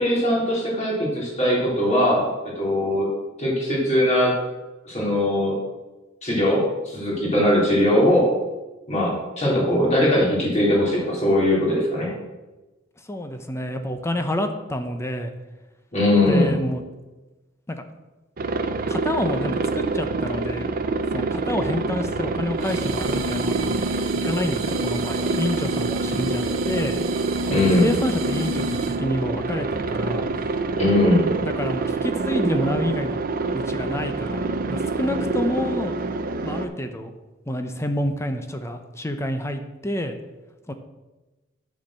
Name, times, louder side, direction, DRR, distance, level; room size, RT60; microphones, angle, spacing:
voice 1, 0.0-2.3 2.5-3.1 3.4-4.3 4.8-5.5 6.2-8.3 8.9-12.1 15.9-16.5 27.5-27.9 30.8-31.3, left 1 dB, 35° left, -4 dB, 3.3 m, -20 dB
voice 2, 13.1-15.3 16.2-16.8 17.7-17.8 18.9-20.8 21.1-23.9 24.2-27.0 27.5-30.3 31.4-36.0 36.4-37.1 37.5-40.1 40.7-40.8, left 1 dB, 15° left, 7 dB, 0.7 m, -28 dB
Aircraft, 18.4-36.7, right 3 dB, 45° right, 0.6 m, -26 dB
sound 1, 22.6-29.1, right 1 dB, 85° right, 0.9 m, -30 dB
9.4 x 4.4 x 7.2 m, 1.1 s
head